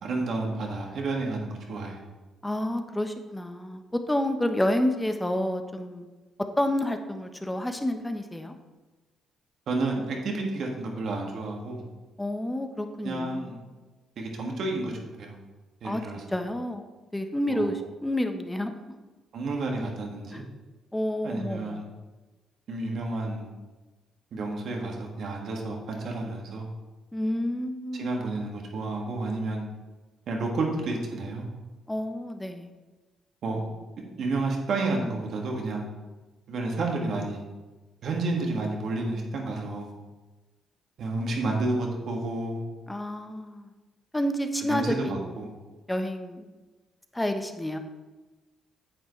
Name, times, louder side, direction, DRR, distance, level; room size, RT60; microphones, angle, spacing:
voice 1, 0.0-2.0 9.7-11.8 13.0-13.6 14.2-14.9 15.2-15.4 15.8-16.2 17.5-17.7 19.3-20.4 21.2-21.9 22.7-23.5 24.3-26.7 27.9-29.7 30.3-31.5 33.4-33.6 34.0-35.9 36.5-37.4 38.0-39.9 41.0-42.6 44.7-45.5, right 2 dB, 65° right, 0 dB, 2.0 m, -30 dB
voice 2, 2.4-6.1 6.6-8.6 12.2-13.5 15.8-16.0 16.3-16.8 17.1-18.8 20.3-20.4 20.9-21.8 27.1-28.1 31.9-32.7 42.9-43.7 44.1-45.5 45.9-46.5 47.1-47.8, left 1 dB, 10° left, 6 dB, 1.1 m, -29 dB
9.7 x 8.0 x 3.3 m, 1.2 s
supercardioid pair, 65°, 0 cm